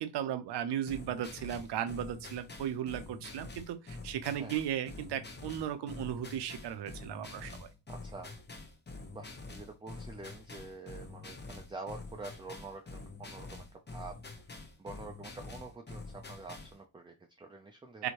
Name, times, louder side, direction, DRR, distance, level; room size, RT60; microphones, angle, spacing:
voice 1, 0.0-7.7 18.0-18.1, right 10 dB, 60° right, 0.6 m, -36 dB
sound 1, 0.9-16.8, left 3 dB, 20° left, 0.8 m, -47 dB
voice 2, 7.9-8.4 9.1-14.4 14.8-18.1, right 3 dB, 10° right, 0.4 m, -47 dB
2.8 x 2.1 x 2.9 m
supercardioid pair, 50°, 48 cm